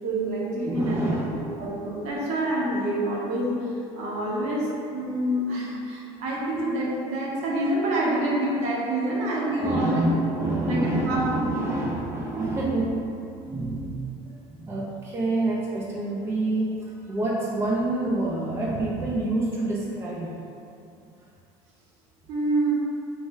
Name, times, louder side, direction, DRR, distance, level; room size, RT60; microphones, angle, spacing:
voice 1, 0.0-1.0 1.6-10.0 10.6-10.8 11.1-11.3 22.3-22.7, right 1 dB, 60° right, -4 dB, 0.8 m, -27 dB
voice 2, 0.6-1.6 9.5-13.1 13.5-14.0 14.5-20.3, right 2 dB, 20° right, -4 dB, 0.4 m, -27 dB
3.2 x 2.0 x 3.3 m, 2.7 s
supercardioid pair, 110°, 13 cm